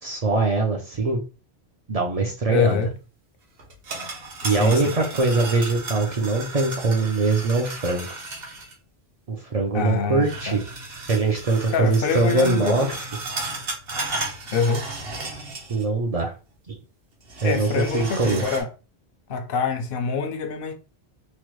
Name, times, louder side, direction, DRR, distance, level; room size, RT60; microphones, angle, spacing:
voice 1, 0.0-1.2 1.9-2.9 4.4-8.1 9.3-10.6 11.1-13.1 15.7-16.3 16.7-16.8 17.4-18.4, right 3 dB, 45° right, 0.5 m, -22 dB
voice 2, 2.5-2.9 4.4-4.8 9.7-10.6 11.7-12.9 14.5-14.9 17.4-18.7 19.3-20.7, left 5 dB, 65° left, 0.7 m, -25 dB
sound 1, 3.6-8.7 10.2-15.9 16.2-16.3 17.2-18.6, right 2 dB, 65° right, 1.1 m, -34 dB
3.1 x 2.2 x 3.0 m
omnidirectional pair, 1.1 m